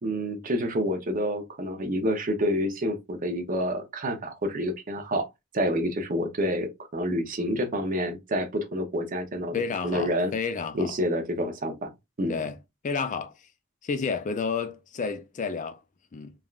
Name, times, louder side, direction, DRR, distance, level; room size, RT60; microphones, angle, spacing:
voice 1, 0.0-5.3 5.5-9.5 9.8-10.3 10.7-11.9 12.2-12.4, equal, 40° right, 0.7 m, -28 dB
voice 2, 9.5-10.9 12.3-12.6 12.8-13.3 13.8-15.8 16.1-16.3, left 5 dB, 35° left, 0.4 m, -30 dB
3.4 x 2.2 x 2.4 m
head